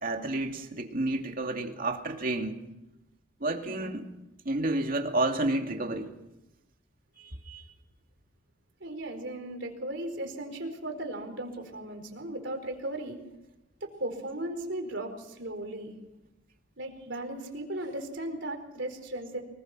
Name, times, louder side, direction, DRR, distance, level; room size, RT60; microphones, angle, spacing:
voice 1, 0.0-2.6 3.4-4.0 4.4-6.1 7.2-7.6, right 2 dB, 45° right, 3 dB, 2.6 m, -30 dB
voice 2, 8.8-13.2 13.8-15.9 16.8-19.4, right 1 dB, 65° right, 4 dB, 4.6 m, -37 dB
25.5 x 20.0 x 6.2 m, 0.94 s
head